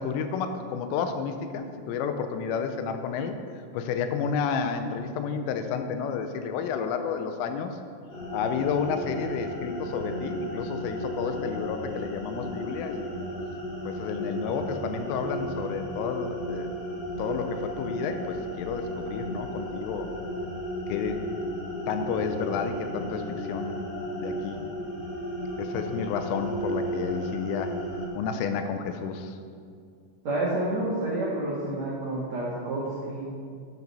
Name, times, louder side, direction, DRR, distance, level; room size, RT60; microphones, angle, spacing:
voice 1, 0.0-3.4 3.7-7.8 8.3-13.1 13.8-16.7 17.2-20.1 20.9-21.2 21.9-23.8 24.2-24.6 25.6-27.8 28.2-29.4, left 6 dB, 80° left, 7 dB, 3.1 m, -31 dB
sound 1, 8.1-28.1, equal, 35° left, 3.7 m, -34 dB
voice 2, 30.2-33.2, right 1 dB, 75° right, -7 dB, 1.6 m, -29 dB
11.0 x 10.5 x 4.2 m, 2.2 s
omnidirectional pair, 6.0 m